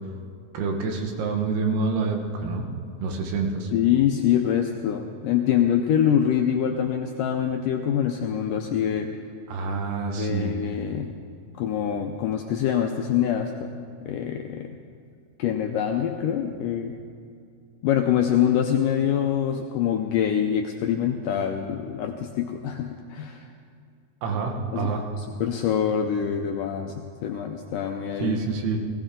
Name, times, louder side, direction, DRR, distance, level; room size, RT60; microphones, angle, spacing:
voice 1, 0.5-2.7 3.0-3.7 9.5-10.5 24.2-25.0 28.2-28.8, right 4 dB, 90° right, 2 dB, 3.5 m, -27 dB
voice 2, 3.7-9.1 10.2-11.1 11.6-13.7 14.1-14.7 15.4-16.9 17.8-23.5 24.7-24.9 25.4-26.9 27.2-28.4, left 9 dB, 80° left, 4 dB, 1.9 m, -25 dB
19.5 x 16.0 x 3.8 m, 2.4 s
omnidirectional pair, 4.4 m